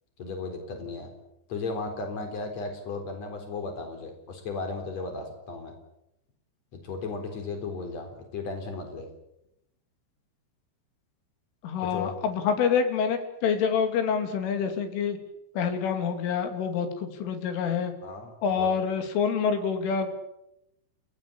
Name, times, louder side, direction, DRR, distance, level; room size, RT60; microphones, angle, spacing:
voice 1, 0.2-1.1 1.5-5.7 6.8-9.1 11.9-12.1 18.0-18.7, left 3 dB, 35° left, 5 dB, 4.8 m, -35 dB
voice 2, 11.6-15.2 15.5-17.9 18.4-20.1, left 6 dB, 85° left, 7 dB, 5.1 m, -27 dB
30.0 x 17.0 x 8.6 m, 0.85 s
omnidirectional pair, 5.5 m